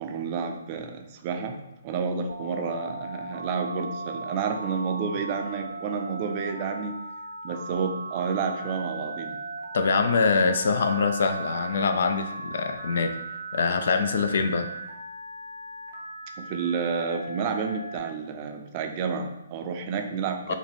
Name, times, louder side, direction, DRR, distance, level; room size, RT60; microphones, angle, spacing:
voice 1, 0.0-1.6 1.8-7.0 7.4-9.4 16.4-20.5, right 5 dB, 35° right, 5 dB, 0.5 m, -30 dB
Telephone, 2.3-18.0, right 3 dB, 80° right, 0.7 m, -37 dB
voice 2, 9.7-13.2 13.5-14.7 20.5-20.6, left 5 dB, 60° left, 8 dB, 0.4 m, -24 dB
4.6 x 2.2 x 3.4 m, 0.92 s
figure-of-eight pair, 130°, 0 cm